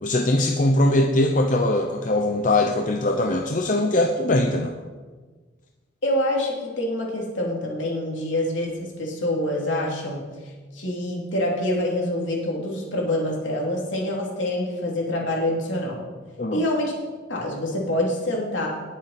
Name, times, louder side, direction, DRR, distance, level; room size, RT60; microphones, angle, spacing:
voice 1, 0.0-4.7 16.4-16.7, left 1 dB, 40° left, 3 dB, 0.7 m, -21 dB
voice 2, 6.0-10.2 10.7-16.0 16.5-16.9 17.3-18.7, left 1 dB, 70° left, -2 dB, 3.0 m, -26 dB
19.0 x 7.3 x 4.3 m, 1.4 s
head